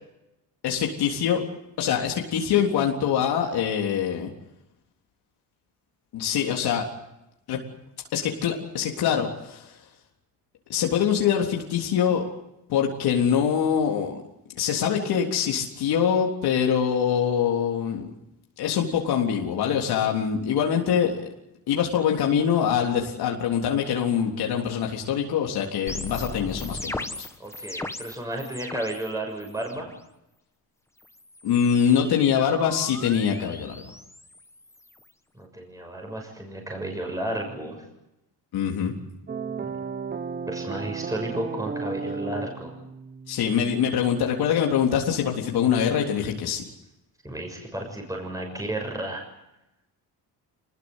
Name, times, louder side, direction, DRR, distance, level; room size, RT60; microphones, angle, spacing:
voice 1, 0.6-1.4 1.8-4.3 6.1-6.9 7.5-7.6 8.1-9.7 10.7-12.2 12.7-14.2 14.6-18.1 18.6-21.2 21.7-27.3 31.4-33.9 38.5-38.9 43.3-46.6, left 8 dB, 75° left, 1 dB, 3.7 m, -24 dB
sound 1, 25.9-29.1 29.4-30.0 31.0-35.1, left 2 dB, 5° left, 1.5 m, -38 dB
voice 2, 27.4-29.9 35.3-37.8 40.5-42.7 47.2-49.2, right 1 dB, 10° right, 2 dB, 6.5 m, -32 dB
sound 2, 39.3-44.3, right 5 dB, 25° right, 1.2 m, -34 dB
27.0 x 20.5 x 8.2 m, 0.90 s
cardioid pair, 135°, 38 cm